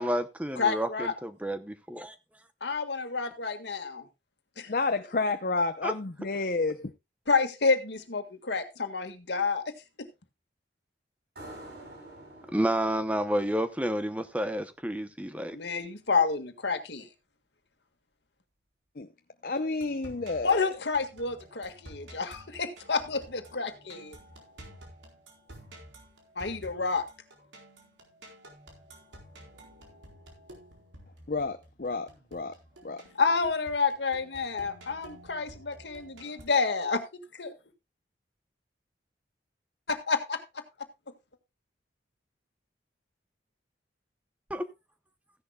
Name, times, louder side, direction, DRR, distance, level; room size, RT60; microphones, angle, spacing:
voice 1, 0.0-2.2 5.8-5.9 12.5-15.6 44.5-44.6, equal, 10° right, 0.8 m, -30 dB
voice 2, 0.6-1.1 2.6-4.0 4.6-4.7 7.3-9.6 15.5-17.1 20.4-24.2 26.3-27.0 33.2-37.0 37.4-37.5 39.9-40.6, left 4 dB, 70° left, 1.8 m, -29 dB
voice 3, 4.7-6.9 19.0-19.1 19.4-20.7 31.3-32.5 32.8-33.0, left 3 dB, 50° left, 0.7 m, -30 dB
sound 1, 11.4-14.7, right 1 dB, 65° right, 7.5 m, -49 dB
sound 2, 19.7-36.4, right 1 dB, 85° right, 4.2 m, -51 dB
15.5 x 11.0 x 2.3 m
head